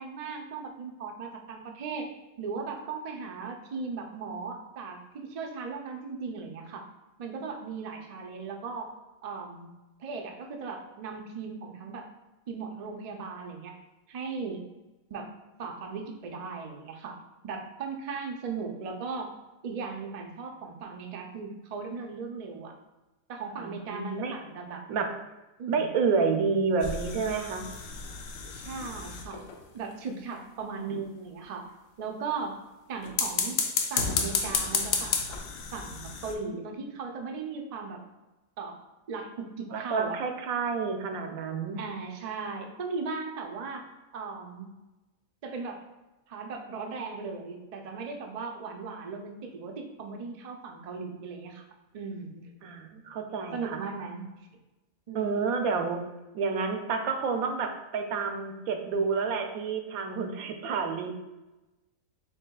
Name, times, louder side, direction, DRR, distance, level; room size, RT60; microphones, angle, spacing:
voice 1, 0.0-6.9 7.2-8.9 9.2-9.7 10.0-12.1 12.5-13.8 14.1-14.6 15.1-17.2 17.4-19.4 19.6-22.8 23.3-24.8 25.6-25.8 28.4-29.4 29.7-31.7 32.0-32.6 32.9-33.6 33.9-35.4 35.7-38.0 38.6-38.8 39.1-40.2 41.8-43.9 44.1-44.7 45.4-45.8 46.3-51.7 51.9-52.5 53.5-54.3 55.1-55.3, right 4 dB, 70° right, 2 dB, 0.3 m, -37 dB
voice 2, 23.6-24.3 24.9-25.1 25.7-27.7 39.7-41.8 52.6-53.8 55.1-56.0 56.3-61.1, right 5 dB, 90° right, 5 dB, 1.1 m, -29 dB
sound 1, 26.8-29.6 33.0-36.3, left 5 dB, 75° left, 1.0 m, -31 dB
7.3 x 2.8 x 2.3 m, 1.1 s
omnidirectional pair, 1.5 m